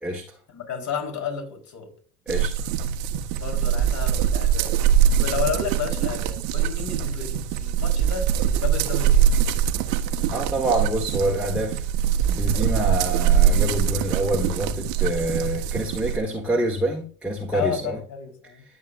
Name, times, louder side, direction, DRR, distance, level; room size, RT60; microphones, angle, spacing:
voice 1, 0.0-0.4 2.3-2.6 10.3-11.8 12.3-18.0, right 1 dB, 5° right, 1.5 m, -26 dB
voice 2, 0.5-1.9 3.3-4.7 5.2-9.3 17.5-18.6, left 6 dB, 40° left, 3.9 m, -32 dB
sound 1, 2.3-16.2, right 9 dB, 60° right, 1.3 m, -22 dB
12.5 x 7.2 x 2.5 m
hypercardioid pair, 70°, 45 cm